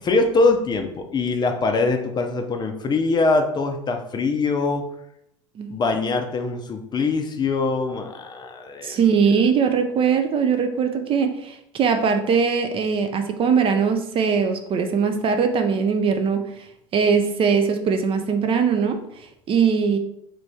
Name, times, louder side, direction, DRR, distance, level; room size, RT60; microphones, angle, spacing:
voice 1, 0.0-4.8 5.7-9.0, left 3 dB, 25° left, 5 dB, 0.5 m, -23 dB
voice 2, 8.8-16.7 16.9-19.0 19.5-20.0, right 6 dB, 35° right, 7 dB, 0.5 m, -21 dB
3.1 x 2.5 x 3.4 m, 0.76 s
figure-of-eight pair, 70°, 16 cm